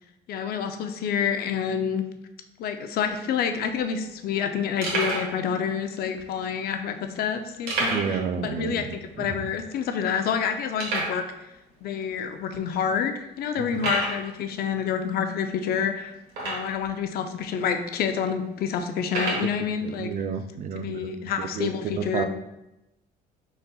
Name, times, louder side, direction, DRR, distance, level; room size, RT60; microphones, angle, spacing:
voice 1, 0.3-2.0 2.6-11.2 11.8-16.1 16.4-20.1 20.8-22.3, left 7 dB, 65° left, 7 dB, 0.5 m, -28 dB
sound 1, 3.4-3.5 3.6-3.8 4.3-4.4 4.8-5.3 6.1-6.2 7.7-8.3 8.5-8.6 9.1-9.2 9.8-9.9 10.8-11.2 12.0-12.1 12.7-12.8 13.7-14.2 16.3-16.9 17.6-17.7 19.0-19.5, right 2 dB, 80° right, 1.5 m, -29 dB
voice 2, 7.8-9.4 13.6-13.9 19.8-22.2, right 7 dB, 50° right, 8 dB, 0.4 m, -31 dB
5.1 x 4.1 x 2.3 m, 0.91 s
cardioid pair, 110°, 17 cm